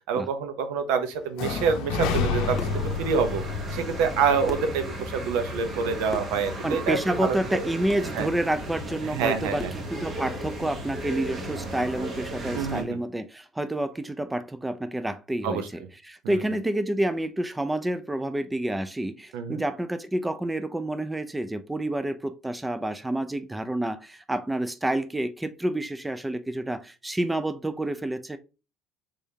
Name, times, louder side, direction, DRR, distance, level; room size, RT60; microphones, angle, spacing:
voice 1, 0.1-2.6 3.0-7.4 8.1-8.3 9.0-9.7 12.5-13.0 15.4-15.7 16.2-16.4 19.3-19.6, right 6 dB, 80° right, 0.6 m, -27 dB
sound 1, 1.4-5.3, left 5 dB, 75° left, 0.6 m, -30 dB
sound 2, 2.4-12.8, right 1 dB, 40° right, 1.1 m, -35 dB
sound 3, 2.6-2.9 4.1-4.2 4.5-4.8 6.1-6.4 7.9-8.1 9.6-9.9, left 3 dB, 25° left, 0.7 m, -38 dB
voice 2, 6.6-9.6 9.9-15.6 16.0-28.4, right 1 dB, 10° right, 0.4 m, -29 dB
3.5 x 3.5 x 2.7 m
supercardioid pair, 90°, 0 cm